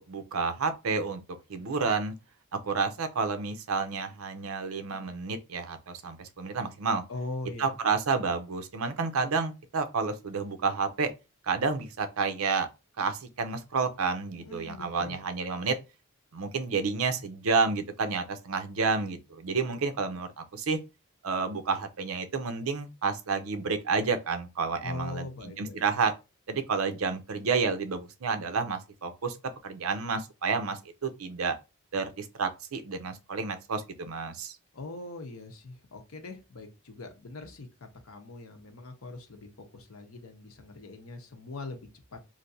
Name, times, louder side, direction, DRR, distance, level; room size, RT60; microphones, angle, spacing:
voice 1, 0.1-1.2 1.5-2.1 2.6-7.0 7.6-11.1 11.4-12.7 13.0-15.8 16.3-20.8 21.2-26.1 26.5-29.4 29.6-31.5 31.9-34.6, right 4 dB, 75° right, 0.6 m, -30 dB
voice 2, 7.1-7.7 14.4-15.2 24.8-25.8 34.7-37.7 38.0-42.2, left 2 dB, 75° left, 0.8 m, -41 dB
3.3 x 2.6 x 2.6 m
head